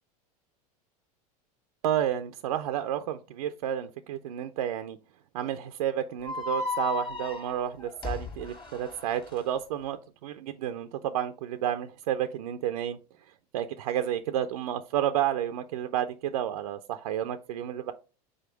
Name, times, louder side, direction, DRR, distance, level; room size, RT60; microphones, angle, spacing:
voice 1, 1.8-5.0 5.3-13.0 13.5-17.9, right 10 dB, 70° right, 9 dB, 0.5 m, -31 dB
sound 1, 6.2-9.4, left 3 dB, 20° left, 1.7 m, -34 dB
5.0 x 4.2 x 4.5 m, 0.34 s
hypercardioid pair, 80°, 20 cm